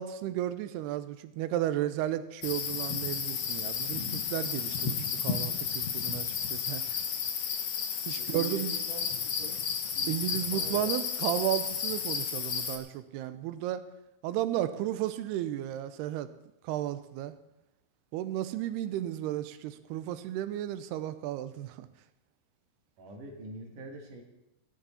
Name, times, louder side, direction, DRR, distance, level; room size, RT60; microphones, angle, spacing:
voice 1, 0.0-6.8 8.1-8.8 10.1-13.8 14.2-16.3 16.6-17.3 18.1-21.9, right 12 dB, 85° right, 13 dB, 2.7 m, -33 dB
sound 1, 2.4-12.8, left 7 dB, 90° left, 1.3 m, -32 dB
voice 2, 8.2-9.1 9.4-9.6 10.0-11.0 23.0-24.2, right 2 dB, 55° right, 1 dB, 3.1 m, -44 dB
16.5 x 12.5 x 4.3 m, 0.89 s
omnidirectional pair, 4.7 m